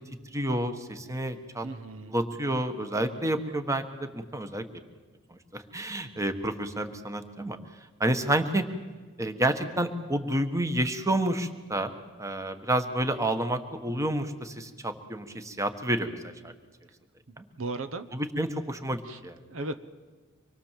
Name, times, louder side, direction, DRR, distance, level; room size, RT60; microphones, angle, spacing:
voice 1, 0.3-1.7 2.1-4.6 5.5-7.6 8.0-8.6 9.2-11.9 12.2-16.2 16.4-16.5 17.4-17.5 18.1-19.4, right 1 dB, 15° right, 8 dB, 1.3 m, -29 dB
voice 2, 1.6-2.1 17.3-18.1 19.0-19.2 19.5-19.8, right 2 dB, 75° right, 10 dB, 1.0 m, -36 dB
25.5 x 21.5 x 7.5 m, 1.4 s
head